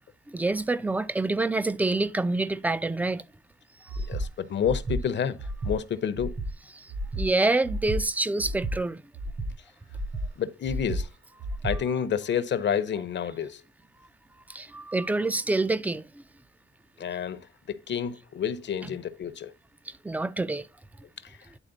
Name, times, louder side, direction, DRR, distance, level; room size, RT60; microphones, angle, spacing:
voice 1, 0.3-3.2 3.9-4.0 6.7-6.9 7.2-9.0 14.5-16.0 20.0-20.7, right 2 dB, 10° right, 0.3 m, -27 dB
Breathing, 3.9-4.3 4.6-5.0 5.4-5.7 6.1-6.5 6.9-7.2 7.6-8.0 8.4-8.7 9.1-9.5 9.9-10.3 10.6-11.0 11.4-11.8, right 1 dB, 70° right, 3.4 m, -31 dB
voice 2, 4.1-5.4 5.6-6.3 10.4-11.1 11.6-13.6 17.0-17.4 17.7-19.5, left 8 dB, 60° left, 0.7 m, -29 dB
9.9 x 4.1 x 3.9 m
wide cardioid pair, 175°, 21 cm